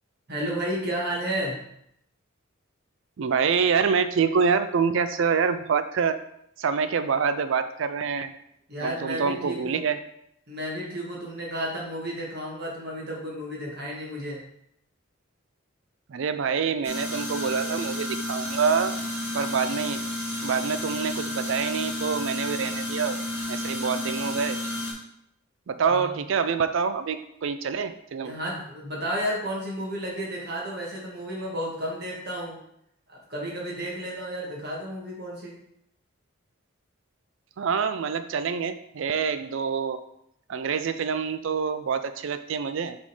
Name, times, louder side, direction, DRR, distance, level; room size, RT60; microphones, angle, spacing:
voice 1, 0.3-1.7 8.7-9.8 10.5-14.4 25.9-26.1 28.2-32.6 33.1-35.6, equal, 50° right, -3 dB, 1.9 m, -32 dB
voice 2, 3.2-6.2 6.6-8.3 8.8-10.1 16.1-18.9 19.3-20.0 20.4-23.2 23.5-24.6 25.7-28.3 37.6-40.0 40.5-43.0, right 6 dB, 65° right, 11 dB, 0.4 m, -26 dB
sound 1, 16.8-24.9, left 1 dB, 10° right, 2.1 m, -31 dB
6.0 x 3.7 x 4.8 m, 0.76 s
head